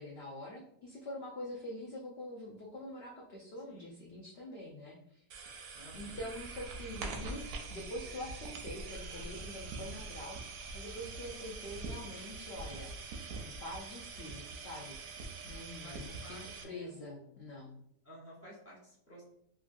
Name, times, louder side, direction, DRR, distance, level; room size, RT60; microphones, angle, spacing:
voice 1, 0.0-5.2 5.9-12.9 13.4-16.4 16.6-17.8, left 1 dB, 75° left, -3 dB, 0.5 m, -45 dB
voice 2, 3.7-4.0 5.7-6.3 15.8-17.4 18.0-19.2, equal, 15° right, -7 dB, 0.6 m, -53 dB
sound 1, 5.3-16.6, right 4 dB, 70° right, 0.9 m, -44 dB
3.0 x 2.5 x 2.5 m, 0.72 s
omnidirectional pair, 1.7 m